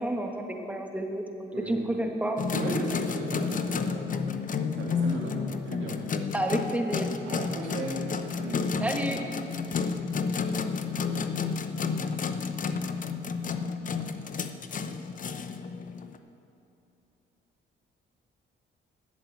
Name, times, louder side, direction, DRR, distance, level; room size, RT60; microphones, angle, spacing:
voice 1, 0.0-2.4 6.3-7.1 8.8-9.2, right 1 dB, 5° right, 3 dB, 1.5 m, -30 dB
voice 2, 1.5-1.9 2.5-4.4 4.7-5.4 5.6-6.0 7.2-8.8, right 2 dB, 75° right, -3 dB, 2.3 m, -36 dB
sound 1, 2.4-16.2, left 5 dB, 40° left, 0.7 m, -31 dB
12.0 x 7.9 x 8.2 m, 2.8 s
cardioid pair, 90°, 20 cm